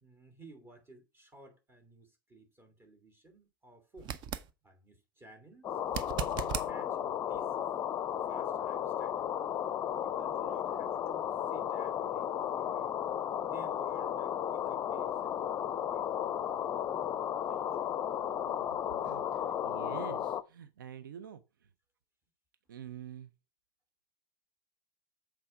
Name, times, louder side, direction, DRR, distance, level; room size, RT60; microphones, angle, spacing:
voice 1, 0.0-4.2 4.6-7.6 8.2-9.5 10.0-13.0 13.4-17.9, right 2 dB, 20° right, 2.9 m, -56 dB
sound 1, 4.0-4.5 5.9-6.7 9.7-9.8, right 9 dB, 40° right, 0.8 m, -37 dB
sound 2, 5.6-20.4, left 10 dB, 30° left, 0.6 m, -34 dB
voice 2, 19.0-21.4 22.7-23.3, right 9 dB, 70° right, 0.6 m, -46 dB
7.6 x 4.7 x 4.9 m
figure-of-eight pair, 85°, 11 cm